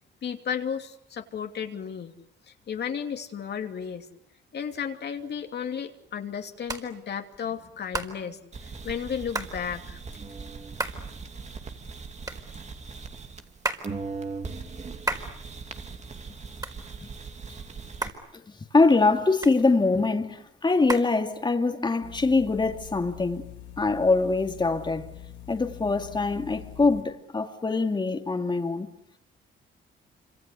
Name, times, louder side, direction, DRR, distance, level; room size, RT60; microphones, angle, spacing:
voice 1, 0.2-2.1 2.5-4.0 4.5-10.0, left 7 dB, 55° left, 2.9 m, -33 dB
Hands, 5.2-21.8, right 2 dB, 20° right, 4.6 m, -38 dB
sound 1, 8.5-13.6 13.8-18.1, right 4 dB, 35° right, 2.7 m, -39 dB
voice 2, 18.7-23.5 23.8-25.1 25.5-28.9, left 3 dB, 25° left, 2.6 m, -23 dB
sound 2, 22.0-27.0, left 12 dB, 85° left, 7.0 m, -44 dB
27.0 x 26.0 x 8.3 m
cardioid pair, 90°, 20 cm